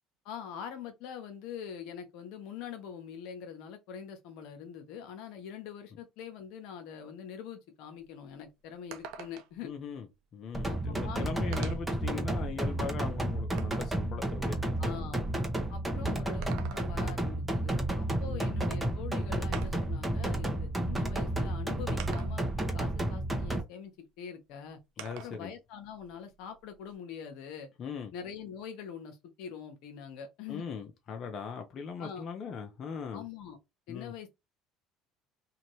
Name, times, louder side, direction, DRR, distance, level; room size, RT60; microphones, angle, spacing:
voice 1, 0.2-9.7 10.7-11.7 14.8-15.2 15.7-23.9 24.2-24.8 25.2-27.7 28.1-30.6 32.0-32.2 33.1-33.6 33.9-34.3, left 8 dB, 75° left, 0.9 m, -44 dB
sound 1, 8.0-8.1 8.4-8.5 8.9-9.7 10.7-10.8 11.5-12.0 12.6-14.0 16.2-17.2 18.7-18.8 19.5-20.0 21.0-21.1 22.0-22.6 25.0-25.5 25.8-26.9, right 8 dB, 75° right, 0.5 m, -46 dB
voice 2, 9.6-10.1 10.3-15.1 15.9-16.3 18.3-18.4 25.0-25.5 27.8-28.1 30.5-33.2 33.9-34.1, left 6 dB, 50° left, 0.7 m, -40 dB
sound 2, 10.5-23.6, right 1 dB, 10° right, 1.0 m, -31 dB
2.8 x 2.7 x 3.0 m
supercardioid pair, 85°, 0 cm